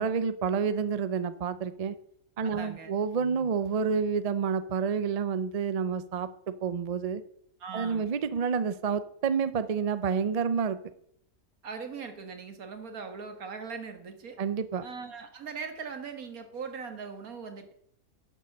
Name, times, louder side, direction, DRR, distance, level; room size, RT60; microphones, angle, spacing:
voice 1, 0.0-1.9 2.4-6.3 6.6-7.2 7.7-10.8 14.4-14.8, right 6 dB, 45° right, 13 dB, 0.5 m, -29 dB
voice 2, 2.4-2.9 7.6-8.1 11.6-14.4 14.8-17.7, right 5 dB, 85° right, 6 dB, 2.0 m, -40 dB
11.0 x 6.9 x 6.4 m, 0.70 s
omnidirectional pair, 1.5 m